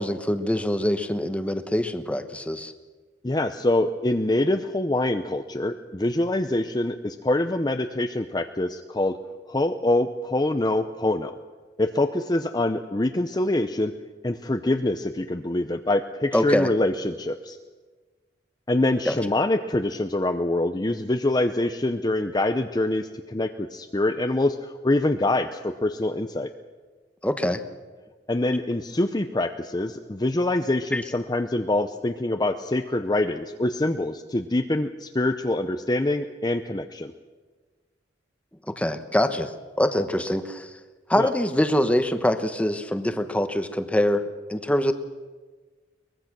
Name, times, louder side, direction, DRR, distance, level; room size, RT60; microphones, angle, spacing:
voice 1, 0.0-2.7 16.3-16.7 19.0-19.2 27.2-27.6 30.9-31.0 38.7-39.5 39.8-40.7 41.1-44.9, left 1 dB, 5° left, 9 dB, 1.0 m, -24 dB
voice 2, 3.2-9.2 9.5-11.3 11.8-13.9 14.2-17.6 18.7-26.5 28.3-37.1 41.2-41.3, left 1 dB, 20° left, 7 dB, 0.7 m, -25 dB
23.5 x 20.5 x 6.1 m, 1.4 s
head